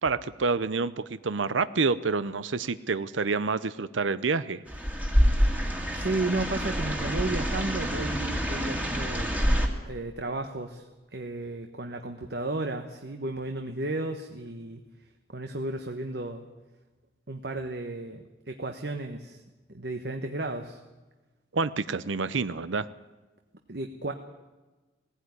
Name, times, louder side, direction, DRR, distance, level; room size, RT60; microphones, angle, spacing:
voice 1, 0.0-0.9 1.2-4.6 21.5-22.9, right 4 dB, 85° right, 15 dB, 0.7 m, -28 dB
sound 1, 4.7-9.7, equal, 10° right, 2.2 m, -26 dB
voice 2, 5.9-9.4 9.9-14.8 15.3-16.5 17.3-19.4 19.7-20.8 23.7-24.1, right 2 dB, 60° right, 5 dB, 1.3 m, -33 dB
18.5 x 16.5 x 9.7 m, 1.2 s
head